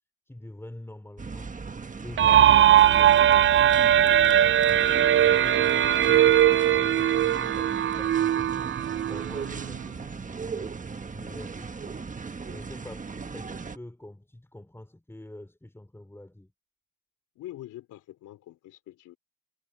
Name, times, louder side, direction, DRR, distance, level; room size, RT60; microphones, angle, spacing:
voice 1, 0.3-1.6 1.9-4.6 5.1-10.8 11.1-12.1 12.5-16.5, left 1 dB, 10° left, 4.8 m, -45 dB
sound 1, 1.2-13.8, right 5 dB, 25° right, 1.4 m, -38 dB
sound 2, 2.2-9.8, right 11 dB, 40° right, 0.5 m, -20 dB
voice 2, 17.4-19.2, left 14 dB, 85° left, 3.8 m, -44 dB
cardioid pair, 90°, 30 cm